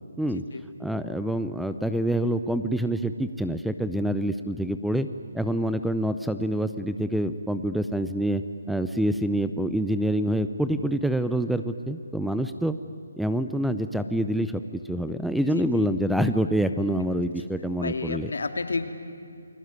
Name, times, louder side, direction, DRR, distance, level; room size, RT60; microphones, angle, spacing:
voice 1, 0.2-0.6 15.6-16.0 17.7-18.9, left 3 dB, 75° left, 7 dB, 2.7 m, -31 dB
voice 2, 0.8-5.1 5.3-8.4 8.7-12.8 13.2-14.6 14.9-18.3, right 1 dB, ahead, 10 dB, 0.6 m, -26 dB
29.5 x 20.0 x 9.7 m, 2.6 s
hypercardioid pair, 160°, 0 cm